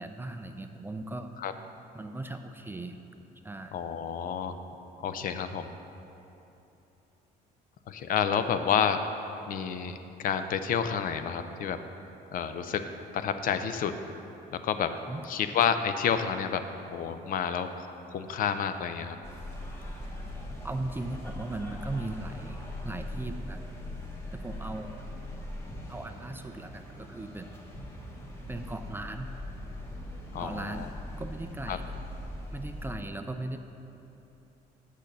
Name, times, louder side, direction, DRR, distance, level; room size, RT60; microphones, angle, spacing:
voice 1, 0.0-1.3 1.9-3.0 3.4-3.7 15.1-15.2 20.6-22.6 22.8-23.7 24.3-25.1 25.9-27.5 28.5-29.3 30.4-30.9 31.2-32.0 32.5-33.6, right 2 dB, 15° right, 7 dB, 0.4 m, -38 dB
voice 2, 3.7-4.6 5.0-5.7 7.9-9.0 9.5-11.8 12.3-12.8 13.1-13.9 14.5-14.9 15.2-16.6 16.9-19.2 30.3-30.9 31.7-31.8, left 7 dB, 55° left, 9 dB, 0.5 m, -29 dB
sound 1, 19.2-32.9, left 1 dB, 15° left, 1.3 m, -41 dB
6.6 x 6.2 x 6.7 m, 3.0 s
cardioid pair, 110°, 17 cm